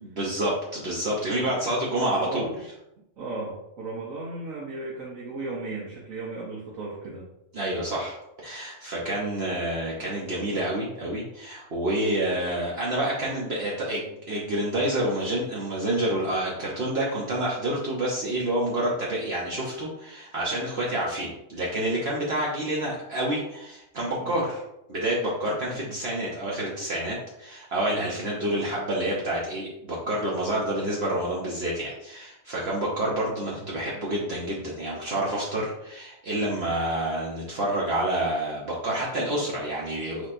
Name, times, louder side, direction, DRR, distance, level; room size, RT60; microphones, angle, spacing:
voice 1, 0.0-2.5 7.5-8.1 8.4-24.6 24.9-40.3, right 1 dB, 55° right, -4 dB, 1.1 m, -28 dB
voice 2, 2.0-2.6 3.2-7.3 9.0-9.1 24.2-24.4 25.5-26.0 27.9-28.1 33.5-33.6 39.2-39.4, right 2 dB, 80° right, -4 dB, 1.3 m, -36 dB
6.3 x 3.1 x 2.6 m, 0.84 s
omnidirectional pair, 1.4 m